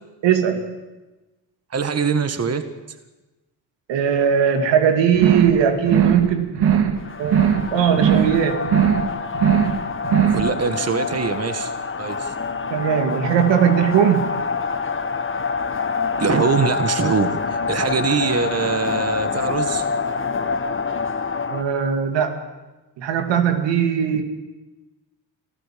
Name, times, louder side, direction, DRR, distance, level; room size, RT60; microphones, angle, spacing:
voice 1, 0.2-0.7 3.9-6.6 7.2-8.7 12.7-14.3 21.5-22.4 23.0-24.2, right 8 dB, 85° right, 6 dB, 2.3 m, -19 dB
voice 2, 1.7-2.6 10.3-11.7 12.0-12.3 16.2-19.8 24.1-24.2, right 5 dB, 35° right, 9 dB, 1.7 m, -23 dB
sound 1, 5.1-5.6 5.8-6.3 6.5-7.0 7.2-7.7 7.9-8.4 8.6-9.1 9.3-9.8 10.0-10.5, right 8 dB, 60° right, 2.2 m, -18 dB
sound 2, 7.0-21.6, left 5 dB, 30° left, 1.4 m, -26 dB
25.5 x 14.5 x 7.6 m, 1.1 s
cardioid pair, 80°, 43 cm